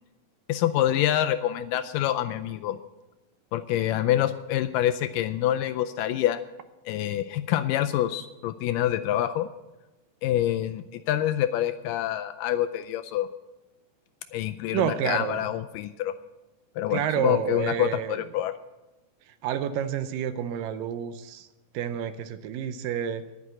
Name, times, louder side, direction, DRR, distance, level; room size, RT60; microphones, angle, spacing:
voice 1, 0.5-2.8 3.5-6.4 6.9-9.5 10.2-13.3 14.3-16.1 16.8-18.5, left 12 dB, 80° left, 11 dB, 2.0 m, -26 dB
voice 2, 14.7-15.5 16.9-18.3 19.3-21.5 21.7-23.2, right 9 dB, 80° right, 11 dB, 2.2 m, -29 dB
11.0 x 9.8 x 7.8 m, 1.0 s
omnidirectional pair, 4.1 m